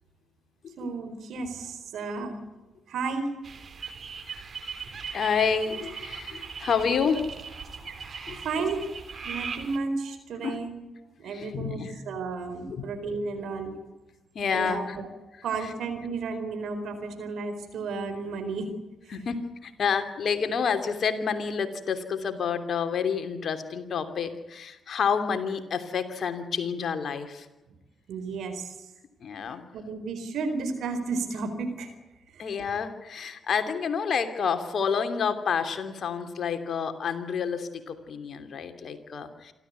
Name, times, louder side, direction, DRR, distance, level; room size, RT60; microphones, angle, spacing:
voice 1, 0.8-2.4 2.9-3.3 8.4-8.8 9.2-10.7 11.2-13.7 14.5-15.1 15.4-18.7 28.1-28.7 29.7-31.9 32.3-32.4, right 4 dB, 65° right, 7 dB, 4.3 m, -32 dB
sound 1, 3.4-9.8, right 5 dB, 50° right, 3.0 m, -39 dB
voice 2, 5.1-7.3 8.3-8.4 10.4-10.6 11.2-12.0 12.7-12.9 14.3-15.0 15.3-15.7 19.1-27.5 29.2-29.6 32.4-39.5, left 6 dB, 55° left, 8 dB, 2.8 m, -29 dB
27.5 x 13.0 x 9.5 m, 1.1 s
hypercardioid pair, 40°, 0 cm